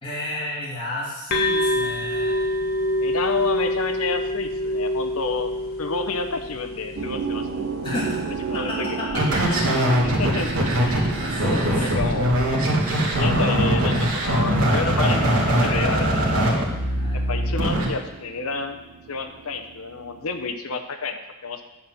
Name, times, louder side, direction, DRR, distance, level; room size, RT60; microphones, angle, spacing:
voice 1, 0.0-2.4 7.8-8.2 8.5-9.4 9.7-10.0 10.4-10.5 10.8-12.0 16.8-17.2, left 1 dB, 25° left, -8 dB, 3.1 m, -32 dB
sound 1, 1.3-8.8, left 1 dB, 45° left, 1.5 m, -27 dB
voice 2, 2.9-5.5 5.8-7.6 8.5-8.9 10.2-10.5 11.8-12.3 12.9-16.7 17.1-18.8 19.1-21.6, left 4 dB, 80° left, 7 dB, 1.0 m, -30 dB
sound 2, 7.0-20.5, right 5 dB, 55° right, 0.6 m, -35 dB
sound 3, 9.1-17.9, equal, 85° right, 2.4 m, -21 dB
10.5 x 4.5 x 7.7 m, 1.0 s
head